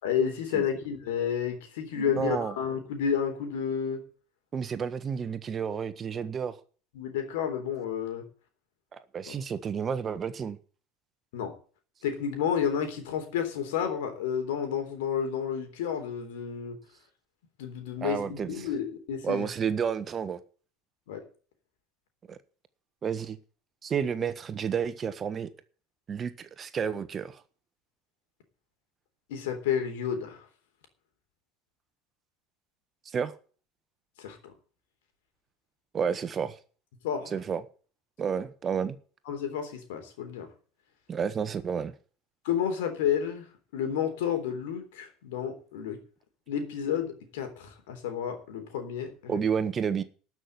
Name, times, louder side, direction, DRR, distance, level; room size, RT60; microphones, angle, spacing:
voice 1, 0.0-4.0 7.0-8.2 9.3-9.4 11.3-11.5 12.0-16.8 17.6-19.5 21.1-21.2 29.3-30.4 34.2-34.5 37.0-37.3 39.3-40.5 42.5-43.5 43.7-46.0 46.5-49.4, left 8 dB, 75° left, 3.5 m, -31 dB
voice 2, 1.9-2.5 4.5-6.6 8.9-10.6 18.0-18.7 19.2-20.4 22.3-22.4 23.0-23.4 23.8-25.5 26.1-27.4 33.1-33.3 35.9-36.6 37.3-37.6 38.2-39.0 41.1-41.9 49.3-50.0, right 7 dB, 35° right, 1.4 m, -31 dB
13.0 x 6.3 x 9.6 m
hypercardioid pair, 80°, 0 cm